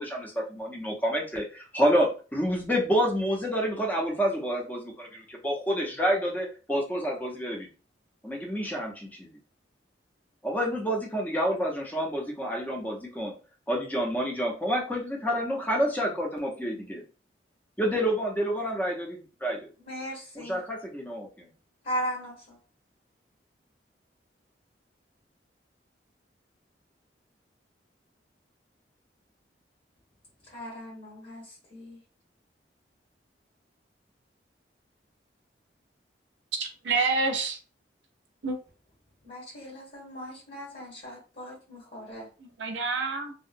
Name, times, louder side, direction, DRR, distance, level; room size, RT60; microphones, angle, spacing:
voice 1, 0.0-7.7 8.2-9.3 10.4-13.3 13.7-17.0 17.8-19.7 20.4-21.5, equal, 10° left, -1 dB, 0.5 m, -28 dB
voice 2, 19.8-20.6 21.8-22.6 30.5-32.0 39.2-42.3, equal, 50° left, -6 dB, 1.1 m, -38 dB
voice 3, 36.6-37.6 38.4-38.6 42.4-43.3, right 4 dB, 80° right, 4 dB, 0.5 m, -28 dB
2.7 x 2.0 x 2.5 m, 0.36 s
head